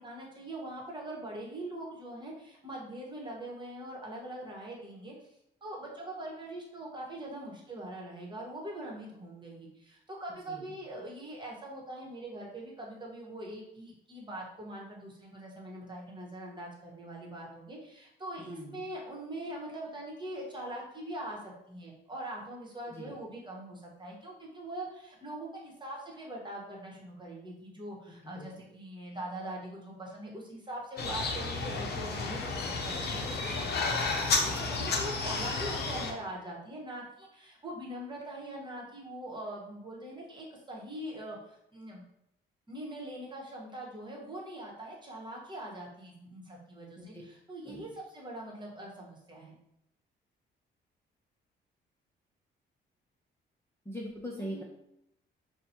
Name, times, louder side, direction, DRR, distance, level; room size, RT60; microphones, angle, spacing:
voice 1, 0.0-5.1 5.6-42.0 42.7-49.5 54.4-54.6, right 1 dB, 25° right, -2 dB, 1.2 m, -42 dB
voice 2, 10.3-10.7 18.4-18.8 22.9-23.1 28.2-28.5 47.0-47.2 47.7-47.8 53.8-54.6, equal, 10° left, -3 dB, 0.8 m, -42 dB
sound 1, 31.0-36.1, left 4 dB, 55° left, 0.7 m, -32 dB
5.8 x 2.3 x 2.8 m, 0.77 s
cardioid pair, 90°, 20 cm